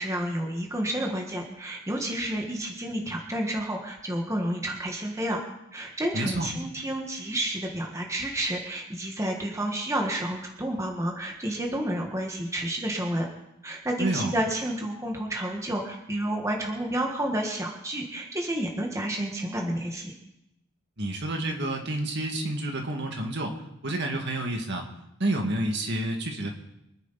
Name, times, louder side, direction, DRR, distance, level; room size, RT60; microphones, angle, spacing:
voice 1, 0.0-5.4 5.7-13.3 13.6-20.1, right 1 dB, 15° right, 1 dB, 1.6 m, -30 dB
voice 2, 6.1-6.5 14.0-14.3 21.0-23.6 23.8-24.9 25.2-26.5, right 1 dB, 55° right, 2 dB, 2.1 m, -29 dB
25.0 x 9.6 x 4.2 m, 0.87 s
head